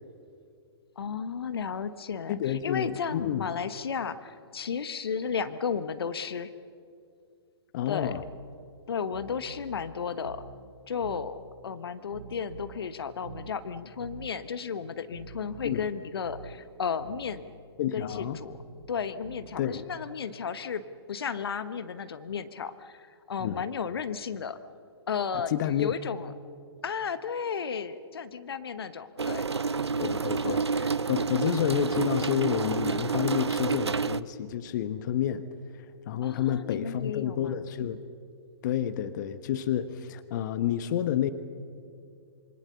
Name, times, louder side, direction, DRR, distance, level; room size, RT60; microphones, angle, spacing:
voice 1, 1.0-6.5 7.9-8.1 8.9-10.4 10.9-11.4 11.6-17.5 17.9-18.5 18.9-20.8 21.1-24.6 25.1-26.3 26.8-29.5 30.4-30.6 36.2-37.6, left 6 dB, 65° left, 12 dB, 1.2 m, -33 dB
voice 2, 2.3-3.5 7.7-8.2 15.6-15.9 17.8-18.4 19.6-19.8 23.4-23.6 25.5-25.9 30.0-35.5 35.7-38.0 38.6-41.3, left 10 dB, 45° left, 12 dB, 1.1 m, -29 dB
sound 1, 8.0-8.3 9.1-9.8 10.2-10.6 11.0-11.3 12.1-12.8 13.2-13.6 14.0-14.3 15.1-15.8 16.2-16.6 17.0-17.3 18.1-18.8 19.2-19.6, right 5 dB, 65° right, 3.3 m, -46 dB
sound 2, 29.2-34.2, right 4 dB, 80° right, 0.7 m, -29 dB
27.0 x 24.5 x 7.0 m, 2.4 s
figure-of-eight pair, 115°, 14 cm